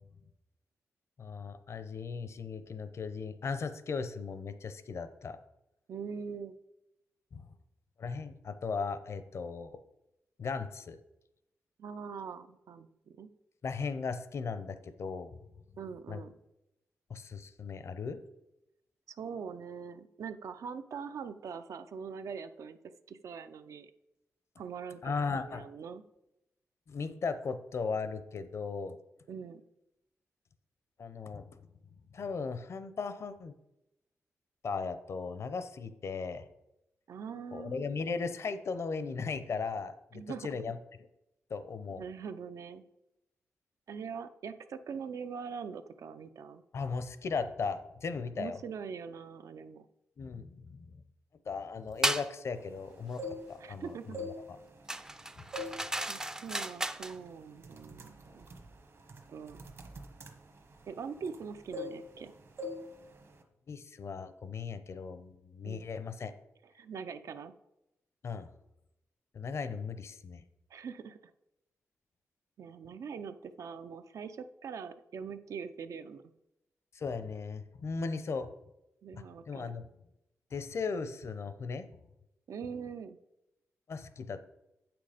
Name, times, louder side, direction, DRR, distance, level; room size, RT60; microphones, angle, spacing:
voice 1, 1.2-5.4 7.3-7.5 8.0-9.8 10.4-11.0 13.6-15.4 16.1-16.2 17.1-18.2 25.0-25.7 26.9-29.0 31.0-31.5 32.1-33.5 34.6-36.5 37.5-40.8 41.5-42.0 46.7-48.6 50.2-51.0 51.5-53.2 53.5-54.6 55.4-55.5 63.7-66.3 68.2-68.5 69.3-70.4 76.9-78.5 79.1-79.8 80.5-81.9 83.9-84.5, left 5 dB, 60° left, 11 dB, 0.7 m, -37 dB
voice 2, 5.9-6.6 11.8-13.3 15.8-16.3 19.1-22.8 23.1-23.9 24.6-26.0 29.3-29.6 37.1-37.9 40.1-40.6 42.0-42.8 43.9-46.6 48.4-49.9 53.6-54.2 56.1-58.5 59.3-59.6 60.8-62.3 65.6-65.8 66.8-67.5 70.7-71.3 72.6-76.2 79.0-79.7 82.5-83.2, right 6 dB, 75° right, 10 dB, 0.5 m, -42 dB
sound 1, 52.0-52.3 54.9-57.2, right 1 dB, 10° right, 0.4 m, -34 dB
sound 2, 53.0-53.7 54.1-55.1 55.5-55.9 56.2-56.5 57.1-57.3 57.6-61.4 61.7-62.3 62.6-62.9 63.1-63.4, left 2 dB, 50° right, 1.1 m, -42 dB
8.3 x 6.1 x 5.0 m, 0.89 s
wide cardioid pair, 110°, 5 cm